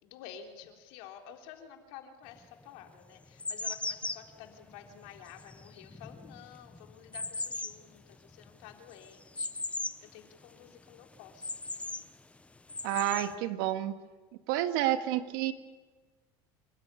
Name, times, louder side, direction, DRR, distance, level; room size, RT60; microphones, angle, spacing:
voice 1, 0.0-11.5, left 9 dB, 75° left, 3 dB, 3.6 m, -51 dB
sound 1, 2.3-2.4 3.0-10.1 10.4-10.5 10.9-12.1 12.6-13.3, left 3 dB, 10° left, 0.9 m, -39 dB
voice 2, 12.8-13.9 14.5-15.5, right 13 dB, 80° right, 9 dB, 1.9 m, -29 dB
27.5 x 13.5 x 9.8 m, 1.3 s
supercardioid pair, 115°, 12 cm